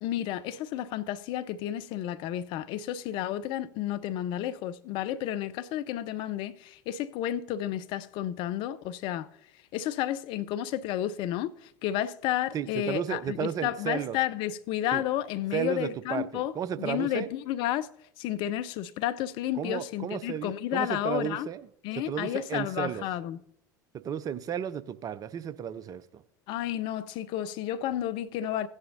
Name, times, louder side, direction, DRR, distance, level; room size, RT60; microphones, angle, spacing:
voice 1, 0.0-9.3 9.7-11.5 11.8-16.5 16.8-17.9 18.2-21.5 21.8-23.4 26.5-28.7, left 12 dB, 50° left, 0.5 m, -31 dB
voice 2, 12.5-14.2 14.9-15.0 15.5-17.3 19.6-21.7 22.1-23.0 23.9-26.2, right 8 dB, 35° right, 0.6 m, -33 dB
15.5 x 9.7 x 2.7 m
figure-of-eight pair, 70°, 11 cm